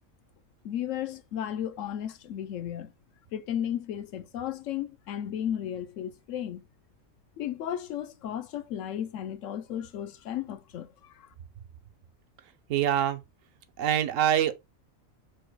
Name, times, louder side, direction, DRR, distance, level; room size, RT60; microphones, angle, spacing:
voice 1, 0.6-2.9 3.3-6.6 7.4-11.3, left 10 dB, 75° left, 0.9 m, -34 dB
voice 2, 12.7-13.2 13.8-14.5, right 10 dB, 75° right, 1.0 m, -24 dB
4.6 x 2.3 x 4.5 m
omnidirectional pair, 1.4 m